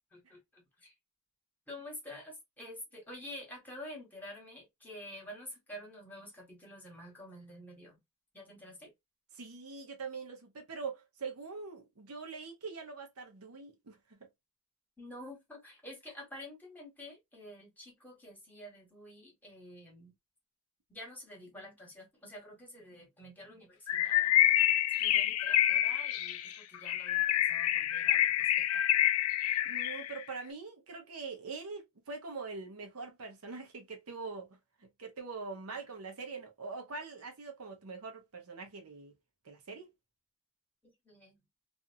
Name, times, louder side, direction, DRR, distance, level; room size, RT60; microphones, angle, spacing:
voice 1, 0.1-0.9 1.7-8.0 8.3-8.9 15.0-20.1 20.9-24.4 25.0-28.5 28.7-29.1 40.8-41.4, left 1 dB, 10° left, 1.3 m, -49 dB
voice 2, 9.3-14.3 29.6-34.5 34.8-39.1 39.4-39.9, right 4 dB, 85° right, 0.8 m, -43 dB
Bird, 23.9-30.2, left 12 dB, 75° left, 0.3 m, -27 dB
2.6 x 2.5 x 2.5 m
head